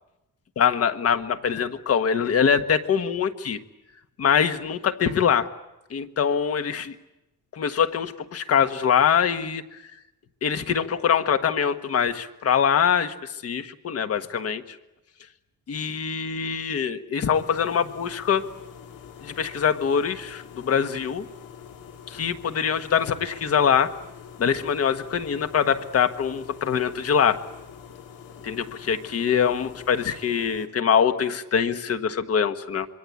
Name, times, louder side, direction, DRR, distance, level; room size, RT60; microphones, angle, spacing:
voice 1, 0.6-3.6 4.2-5.5 5.9-6.9 7.5-9.6 10.4-14.8 15.7-18.4 19.2-21.2 22.1-23.9 24.4-27.4 28.4-32.9, left 7 dB, 45° left, 9 dB, 1.4 m, -23 dB
sound 1, 17.3-30.7, left 7 dB, 85° left, 2.6 m, -45 dB
26.0 x 23.5 x 8.4 m, 0.94 s
wide cardioid pair, 175°, 32 cm